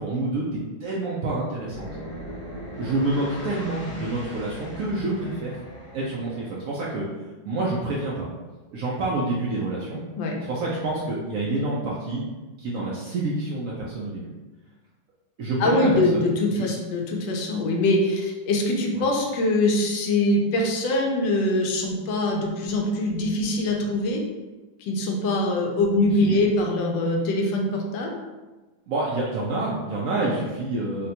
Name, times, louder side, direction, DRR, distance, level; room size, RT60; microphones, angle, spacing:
voice 1, 0.0-1.9 2.8-5.6 5.9-7.0 7.4-8.3 8.7-10.0 10.4-12.2 12.6-14.3 15.4-16.7 19.0-19.1 26.2-26.4 28.9-31.1, right 2 dB, 80° right, -5 dB, 0.7 m, -28 dB
sound 1, 1.5-6.7, equal, 20° left, 0.8 m, -39 dB
voice 2, 15.6-24.2 24.8-28.2, left 2 dB, 80° left, 1 dB, 1.3 m, -23 dB
4.0 x 2.1 x 2.7 m, 1.2 s
omnidirectional pair, 2.0 m